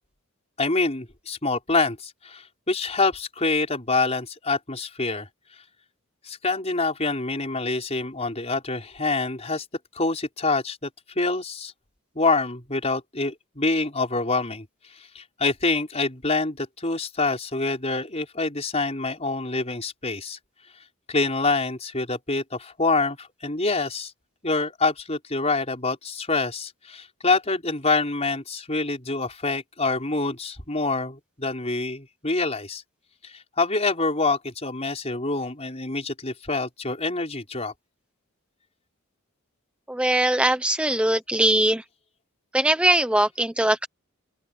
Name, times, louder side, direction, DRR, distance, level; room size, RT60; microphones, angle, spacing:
voice 1, 0.6-5.3 6.2-9.6 9.9-10.9 11.1-11.7 12.1-14.7 15.1-20.4 21.1-24.1 24.4-32.8 33.2-37.7, left 3 dB, 30° left, 5.1 m, -26 dB
voice 2, 39.9-41.8 42.5-43.9, right 1 dB, 5° right, 0.7 m, -21 dB
open air
head